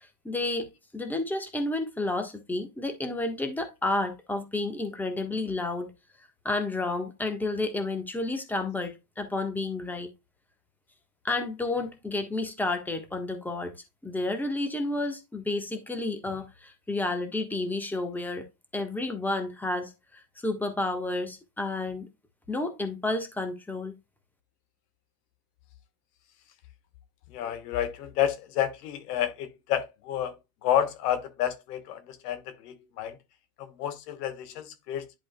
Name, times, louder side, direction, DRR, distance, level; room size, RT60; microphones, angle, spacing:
voice 1, 0.2-5.9 6.4-10.1 11.2-13.7 14.0-18.4 18.7-22.1 22.5-23.9, left 2 dB, 5° left, 1.3 m, -31 dB
voice 2, 27.3-30.3 30.6-33.2 33.6-35.2, left 10 dB, 85° left, 1.6 m, -30 dB
10.5 x 5.0 x 2.3 m
supercardioid pair, 135°, 46 cm